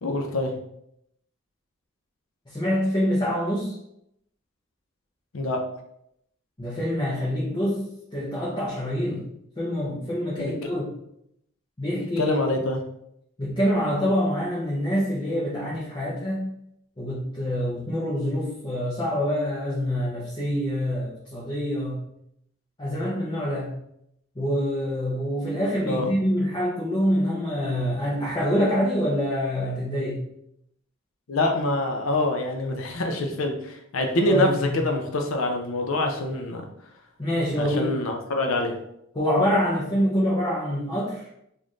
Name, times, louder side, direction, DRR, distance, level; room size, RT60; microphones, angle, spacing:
voice 1, 0.0-0.5 5.3-5.6 10.4-10.5 12.2-12.8 25.8-26.1 31.3-36.6 37.6-38.7, left 1 dB, 75° left, 3 dB, 0.6 m, -25 dB
voice 2, 2.5-3.7 6.6-7.8 8.1-9.2 9.6-10.9 11.8-12.4 13.4-16.5 17.0-22.0 22.8-23.7 24.3-30.2 34.2-34.8 37.2-37.9 39.1-41.3, equal, 25° left, -8 dB, 0.8 m, -26 dB
4.1 x 2.5 x 3.1 m, 0.77 s
head